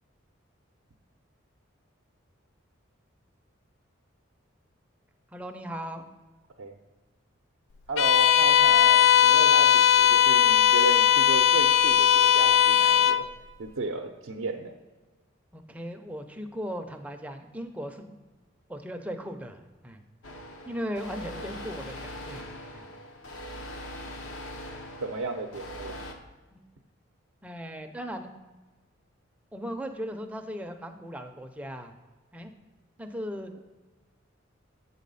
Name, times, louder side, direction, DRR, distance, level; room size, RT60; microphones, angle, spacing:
voice 1, 5.3-6.1 15.5-18.1 18.7-20.0 20.7-22.5 22.7-22.9 26.5-26.6 27.4-28.3 29.5-31.9 32.3-32.5 33.0-33.5, equal, 5° right, 5 dB, 0.4 m, -37 dB
voice 2, 7.9-13.2 13.6-14.7 21.3-21.5 25.0-26.1, right 3 dB, 80° right, 1 dB, 0.5 m, -34 dB
Bowed string instrument, 8.0-13.3, left 10 dB, 60° left, 0.3 m, -19 dB
sound 1, 20.2-26.1, left 1 dB, 75° left, 0.8 m, -41 dB
7.9 x 4.1 x 5.3 m, 1.2 s
head